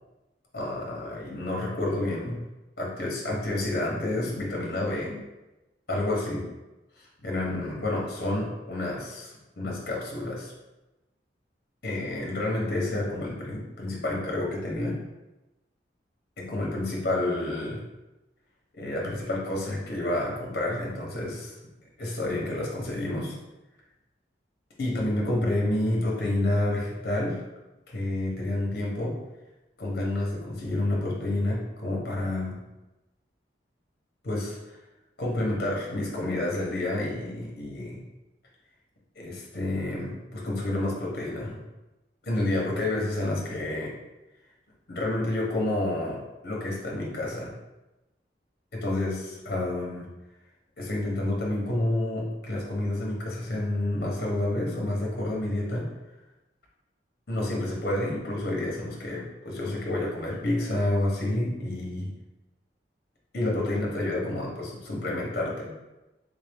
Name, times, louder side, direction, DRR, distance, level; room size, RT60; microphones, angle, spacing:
voice 1, 0.5-2.4 2.8-5.2 5.9-6.4 7.2-10.5 11.8-15.0 16.4-17.8 18.8-21.5 22.0-23.3 24.8-27.4 27.9-29.2 29.8-32.6 34.2-34.8 35.2-38.0 39.2-41.6 42.2-43.9 44.9-47.5 48.8-50.1 50.8-55.9 57.3-62.1 63.3-65.7, left 1 dB, 60° left, -3 dB, 0.9 m, -29 dB
3.5 x 2.6 x 3.4 m, 1.0 s
head